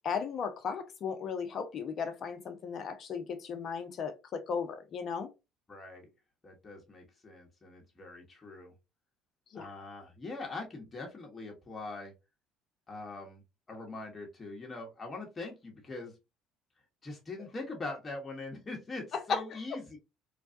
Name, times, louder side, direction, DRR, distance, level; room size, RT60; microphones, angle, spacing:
voice 1, 0.0-5.3 9.5-9.7 19.1-19.4, left 6 dB, 50° left, 0.7 m, -35 dB
voice 2, 5.7-6.1 6.4-8.7 9.5-12.1 12.9-13.4 13.7-16.2 17.0-20.0, left 3 dB, 30° left, 1.1 m, -42 dB
3.2 x 2.3 x 2.6 m
hypercardioid pair, 70°, 0 cm